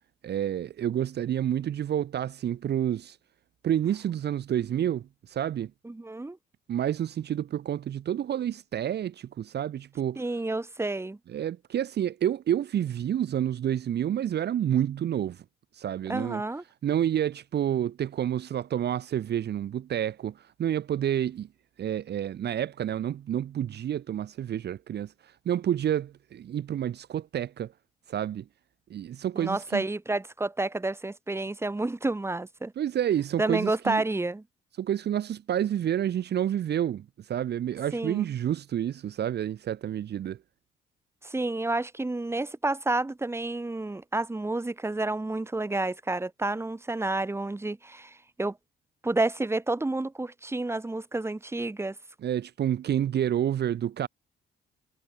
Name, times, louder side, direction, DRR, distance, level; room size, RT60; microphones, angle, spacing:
voice 1, 0.2-3.2 3.6-5.7 6.7-10.2 11.3-15.4 15.7-16.4 16.8-21.5 21.8-27.7 28.1-28.5 28.9-29.8 32.8-34.0 34.8-40.4 52.2-54.1, right 10 dB, 55° right, 0.9 m, -29 dB
voice 2, 5.8-6.4 10.2-11.2 16.1-16.6 29.4-32.7 33.4-34.4 37.9-38.3 41.2-48.6 49.0-51.9, right 2 dB, 15° right, 1.6 m, -30 dB
cardioid pair, 90°, 20 cm